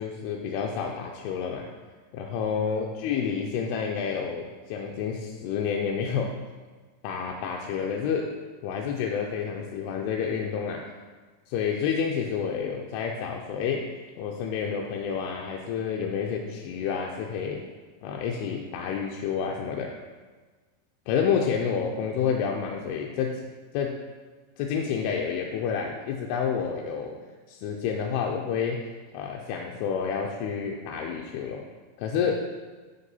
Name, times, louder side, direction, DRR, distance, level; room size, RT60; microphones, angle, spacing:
voice 1, 0.0-1.7 2.1-6.3 7.0-8.2 8.6-10.8 11.5-13.8 14.2-17.6 18.0-19.9 21.1-23.3 23.7-23.9 24.6-27.2 27.5-28.8 29.1-31.6 32.0-32.4, left 7 dB, 85° left, 1 dB, 2.5 m, -29 dB
8.1 x 5.3 x 4.1 m, 1.4 s
omnidirectional pair, 4.6 m